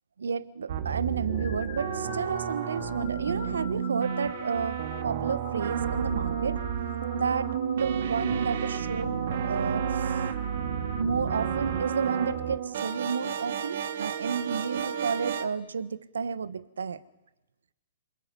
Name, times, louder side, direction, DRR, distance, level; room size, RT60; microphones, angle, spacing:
voice 1, 0.2-6.6 7.1-10.2 11.0-17.0, right 5 dB, 75° right, 15 dB, 1.2 m, -31 dB
sound 1, 0.7-15.5, right 8 dB, 60° right, 2.3 m, -31 dB
sound 2, 1.2-13.2, left 10 dB, 50° left, 2.1 m, -45 dB
27.0 x 22.0 x 9.7 m, 0.98 s
figure-of-eight pair, 120°, 0 cm